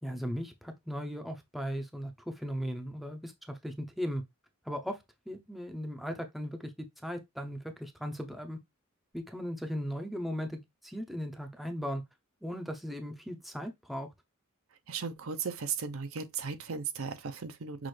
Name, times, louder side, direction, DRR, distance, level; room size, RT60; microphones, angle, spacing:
voice 1, 0.0-4.2 4.6-5.0 5.3-8.6 9.1-12.0 12.4-14.1, equal, ahead, 0.6 m, -37 dB
voice 2, 14.9-17.9, right 5 dB, 70° right, 0.6 m, -36 dB
6.1 x 2.4 x 3.2 m
head